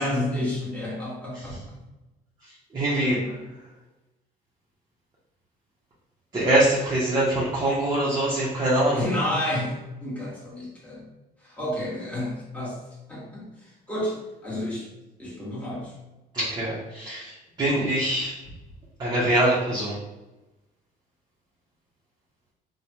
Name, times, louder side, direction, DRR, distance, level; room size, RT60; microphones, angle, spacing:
voice 1, 0.0-1.8 3.1-3.5 8.9-11.0 11.4-12.8 13.1-14.2 14.4-14.9 15.2-15.9, left 1 dB, 10° left, -6 dB, 1.2 m, -30 dB
voice 2, 2.7-3.2 6.3-9.0 16.3-18.3 19.0-20.0, right 1 dB, 25° right, -7 dB, 0.8 m, -23 dB
3.2 x 2.2 x 2.8 m, 1.0 s
cardioid pair, 110°, 17 cm